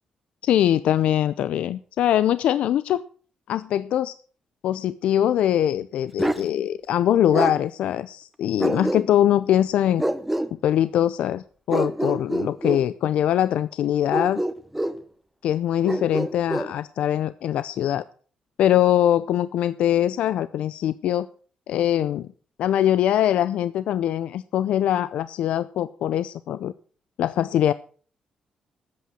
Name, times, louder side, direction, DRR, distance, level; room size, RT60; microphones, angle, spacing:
voice 1, 0.4-3.0 3.5-4.2 4.6-10.0 10.6-14.4 15.4-18.0 18.6-21.3 21.7-22.3 22.6-26.7 27.2-27.7, left 11 dB, 85° left, 15 dB, 0.6 m, -22 dB
Bark, 6.2-6.5 7.3-7.6 8.6-9.3 10.0-10.5 11.7-12.8 14.1-15.0 15.8-16.7, right 1 dB, 5° right, 1.2 m, -25 dB
13.5 x 8.6 x 7.7 m, 0.43 s
cardioid pair, 110°, 2 cm